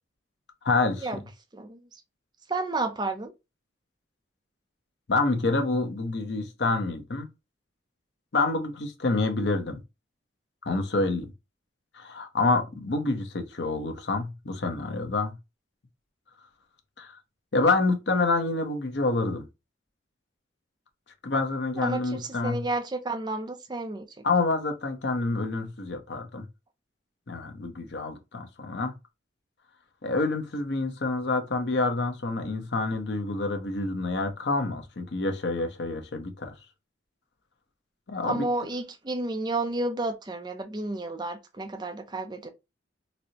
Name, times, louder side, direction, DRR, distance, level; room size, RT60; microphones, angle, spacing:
voice 1, 0.6-1.1 5.1-7.3 8.3-9.8 10.7-11.3 11.9-15.3 17.0-17.2 17.5-19.4 21.2-22.6 24.2-26.5 27.3-28.9 30.0-36.5 38.1-38.5, left 3 dB, 65° left, 0.7 m, -27 dB
voice 2, 2.5-3.3 21.7-24.1 38.2-42.5, right 2 dB, 20° right, 0.4 m, -31 dB
4.1 x 2.0 x 2.8 m
head